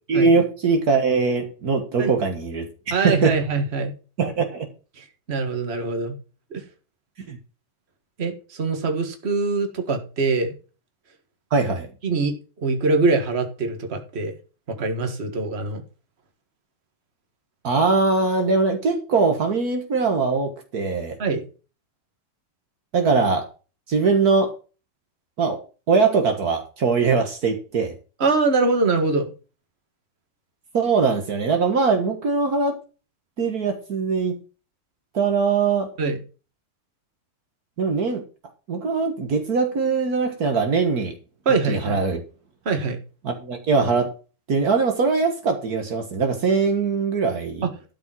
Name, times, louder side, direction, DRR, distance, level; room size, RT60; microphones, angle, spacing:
voice 1, 0.1-2.7 3.0-3.3 4.2-4.7 7.3-7.4 11.5-11.9 17.6-21.2 22.9-23.5 23.9-24.5 25.4-25.6 25.9-27.9 30.7-32.8 33.4-34.4 35.1-35.9 37.8-38.2 38.7-41.1 41.7-42.2 43.2-44.1 44.5-47.7, right 4 dB, 60° right, 5 dB, 1.9 m, -21 dB
voice 2, 2.9-3.9 5.0-6.2 6.5-6.6 8.2-10.5 12.0-12.3 12.6-14.3 14.8-15.8 21.2-21.5 28.2-29.3 36.0-36.2 41.5-42.0 42.7-43.0 47.6-47.7, right 3 dB, 40° right, 5 dB, 1.9 m, -23 dB
12.5 x 5.2 x 6.1 m, 0.35 s
omnidirectional pair, 1.8 m